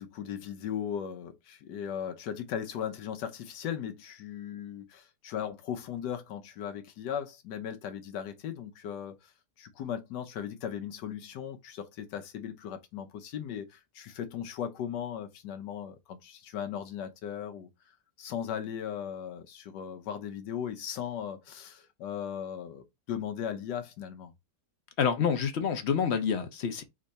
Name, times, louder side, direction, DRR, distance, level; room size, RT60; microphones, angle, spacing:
voice 1, 0.0-17.7 18.2-24.3, left 9 dB, 90° left, 1.3 m, -37 dB
voice 2, 25.0-26.8, left 7 dB, 55° left, 0.7 m, -27 dB
3.7 x 3.2 x 4.0 m
omnidirectional pair, 1.8 m